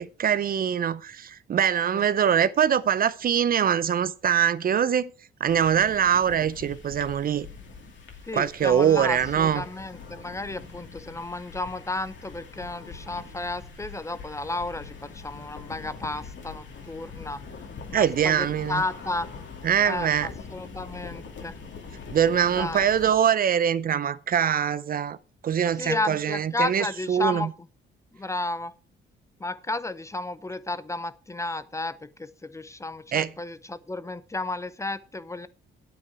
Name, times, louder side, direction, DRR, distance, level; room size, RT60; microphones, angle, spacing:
voice 1, 0.0-5.1 5.4-7.5 8.3-9.6 17.9-18.8 19.6-20.3 22.1-25.2 25.4-27.5 33.1-33.3, right 8 dB, 45° right, 0.5 m, -23 dB
sound 1, 5.5-23.1, left 5 dB, 70° left, 2.6 m, -43 dB
voice 2, 8.2-17.4 17.9-19.3 19.8-21.6 22.5-23.2 25.8-27.5 28.1-28.7 29.4-35.5, left 2 dB, 15° left, 0.6 m, -33 dB
9.4 x 8.6 x 4.8 m
cardioid pair, 90°, 20 cm